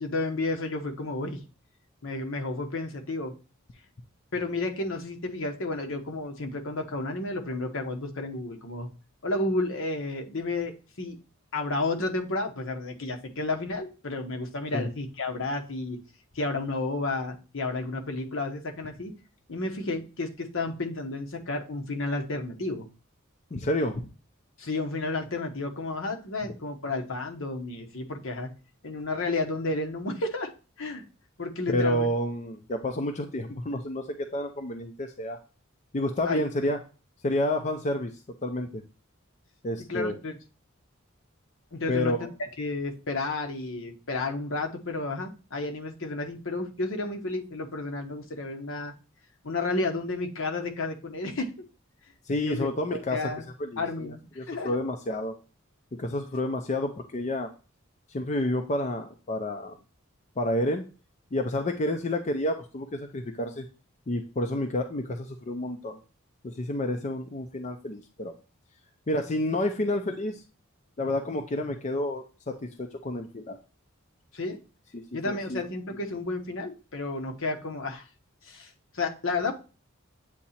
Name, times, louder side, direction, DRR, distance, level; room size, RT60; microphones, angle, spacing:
voice 1, 0.0-1.4 2.0-3.3 4.3-8.9 9.2-11.2 11.5-16.0 16.3-19.1 19.5-22.9 24.6-28.5 28.8-30.5 30.8-31.0 31.4-32.1 36.2-36.4 39.9-40.3 41.7-42.1 42.6-48.9 49.4-51.5 52.4-53.4 53.8-54.8 74.3-74.6 75.1-78.0 78.4-79.5, left 2 dB, 65° left, 3 dB, 1.1 m, -31 dB
voice 2, 23.5-24.1 31.7-35.4 35.9-36.8 37.2-38.1 38.4-38.8 39.6-40.1 41.9-42.3 52.3-53.3 53.6-54.1 54.4-55.4 56.0-57.5 58.1-59.8 60.4-60.8 61.3-63.7 64.1-66.0 66.4-68.3 69.1-70.4 71.0-73.6 74.9-75.6, left 1 dB, 35° left, 4 dB, 0.6 m, -29 dB
8.4 x 2.8 x 4.2 m, 0.33 s
head